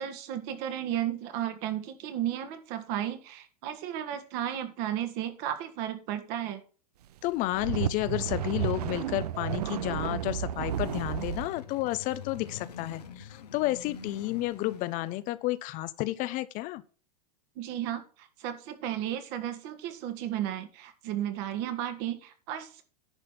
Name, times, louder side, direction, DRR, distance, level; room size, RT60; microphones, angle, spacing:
voice 1, 0.0-6.6 17.5-22.8, right 11 dB, 50° right, 1.7 m, -34 dB
voice 2, 7.2-16.8, left 17 dB, 40° left, 0.7 m, -31 dB
sound 1, 7.3-11.5, right 11 dB, 75° right, 0.7 m, -32 dB
sound 2, 10.1-15.4, left 6 dB, 85° left, 1.4 m, -46 dB
10.5 x 4.2 x 7.1 m
hypercardioid pair, 115°, 20 cm